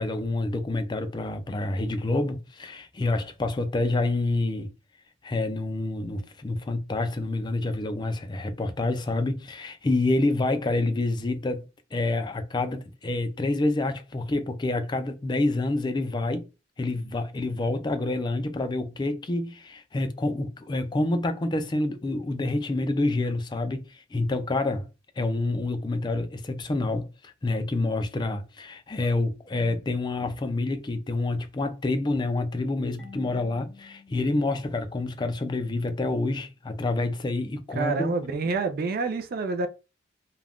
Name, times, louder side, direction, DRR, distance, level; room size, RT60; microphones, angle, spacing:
voice 1, 0.0-4.7 5.2-16.5 16.8-24.9 25.2-38.1, left 2 dB, 25° left, 0.4 m, -28 dB
Marimba xylophone / Wood, 33.0-35.7, left 4 dB, 5° left, 0.7 m, -52 dB
voice 2, 37.7-39.7, right 4 dB, 50° right, 0.4 m, -27 dB
2.4 x 2.2 x 3.4 m
head